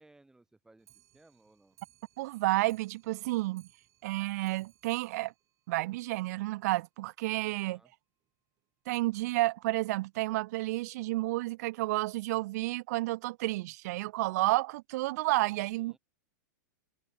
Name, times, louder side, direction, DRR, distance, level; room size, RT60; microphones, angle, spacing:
voice 1, 0.0-1.8 7.5-7.9 15.2-16.0, right 2 dB, 5° right, 6.9 m, -62 dB
Clock, 0.8-6.3 6.6-6.7 7.0-7.1 7.4-7.5 7.8-7.9 8.6-8.7 9.4-9.5 10.2-10.3, right 13 dB, 30° right, 3.6 m, -65 dB
voice 2, 2.2-3.7 4.0-5.3 5.7-7.8 8.9-16.0, right 19 dB, 55° right, 0.5 m, -31 dB
hypercardioid pair, 135°, 10 cm